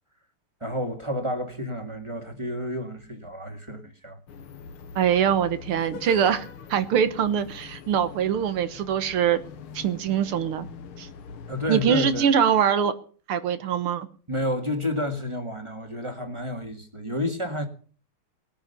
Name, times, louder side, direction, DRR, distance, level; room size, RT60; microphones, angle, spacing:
voice 1, 0.6-4.2 11.5-12.3 14.3-17.7, left 1 dB, 15° right, 1.8 m, -30 dB
sound 1, 4.3-12.2, left 5 dB, 80° left, 2.0 m, -42 dB
voice 2, 5.0-9.4 9.7-10.7 11.0-11.1 11.7-12.9 13.3-14.1, right 8 dB, 75° right, 2.0 m, -23 dB
20.0 x 8.9 x 6.8 m
omnidirectional pair, 2.4 m